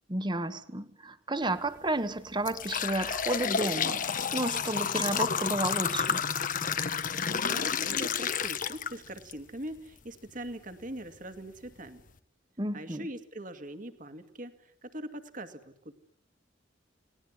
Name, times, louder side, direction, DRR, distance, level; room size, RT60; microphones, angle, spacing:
voice 1, 0.1-4.0 4.3-6.3 12.6-13.1, right 2 dB, 25° right, 1.3 m, -32 dB
sound 1, 1.5-1.7 2.2-9.3 9.8-9.9 10.7-10.8 11.3-11.4 11.9-12.1, left 7 dB, 45° left, 1.0 m, -30 dB
voice 2, 7.5-12.0 12.7-15.9, right 1 dB, 45° right, 2.2 m, -42 dB
29.5 x 19.5 x 9.6 m
head